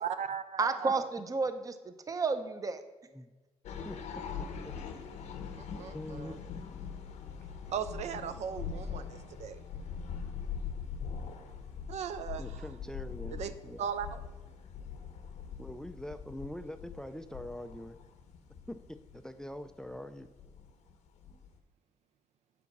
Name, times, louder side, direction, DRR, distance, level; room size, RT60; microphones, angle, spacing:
voice 1, 0.0-1.0 5.6-6.4 7.7-9.6 11.9-12.6 13.3-13.5 13.8-14.2, right 8 dB, 75° right, 11 dB, 0.5 m, -38 dB
voice 2, 0.6-2.8, right 4 dB, 30° right, 10 dB, 0.6 m, -31 dB
sound 1, 3.6-21.6, left 6 dB, 90° left, 0.9 m, -42 dB
voice 3, 3.8-4.7 5.9-6.4 12.4-13.8 15.6-18.0 18.7-20.3, left 1 dB, 5° left, 10 dB, 0.3 m, -44 dB
8.3 x 4.1 x 5.9 m, 1.2 s
cardioid pair, 110°, 12 cm